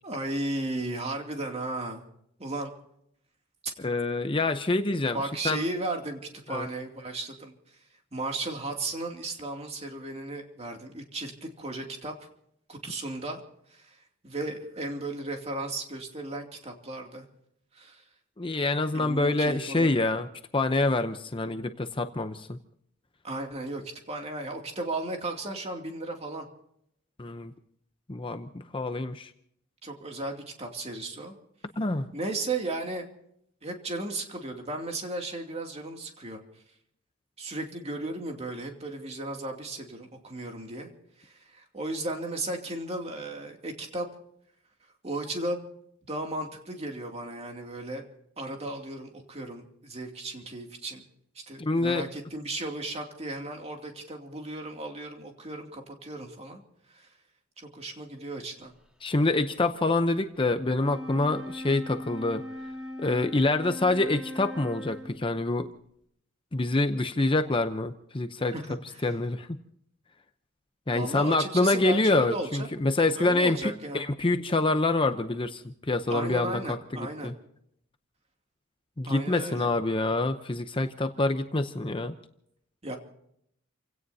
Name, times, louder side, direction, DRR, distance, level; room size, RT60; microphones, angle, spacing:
voice 1, 0.0-2.0 2.4-2.7 5.1-6.2 6.5-7.8 8.1-12.3 12.7-13.4 13.7-17.3 17.7-18.0 18.9-20.1 23.2-26.5 29.8-31.3 32.1-33.1 33.6-36.4 37.4-40.9 41.2-44.1 45.0-45.6 46.1-48.0 48.4-51.0 51.3-56.6 56.9-57.1 57.6-58.7 68.5-68.6 68.9-69.2 70.9-72.7 73.1-74.1 76.1-77.3 79.0-79.7 82.8-83.0, right 2 dB, 30° right, 2 dB, 2.6 m, -35 dB
voice 2, 3.8-5.2 5.4-5.6 6.5-6.7 18.4-20.3 20.5-22.6 27.2-27.5 28.1-29.3 31.8-32.1 51.6-52.1 59.0-62.4 63.0-65.7 66.5-68.5 69.0-69.5 70.9-77.3 79.0-82.2, left 2 dB, 25° left, 8 dB, 0.7 m, -26 dB
Wind instrument woodwind instrument, 60.6-65.4, left 1 dB, 5° right, 2.0 m, -39 dB
29.5 x 17.0 x 2.8 m, 0.73 s
head